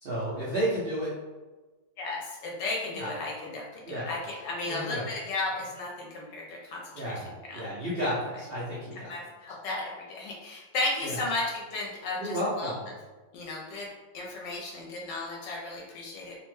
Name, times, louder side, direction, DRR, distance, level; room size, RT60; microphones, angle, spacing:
voice 1, 0.0-1.1 2.9-3.1 3.8-4.1 4.6-5.0 6.9-9.1 11.0-11.2 12.1-12.9, equal, 70° right, -9 dB, 0.5 m, -32 dB
voice 2, 2.0-7.6 9.1-12.7 13.3-13.9 14.1-16.4, left 2 dB, 75° left, -2 dB, 1.2 m, -34 dB
3.0 x 2.1 x 3.0 m, 1.2 s
omnidirectional pair, 1.9 m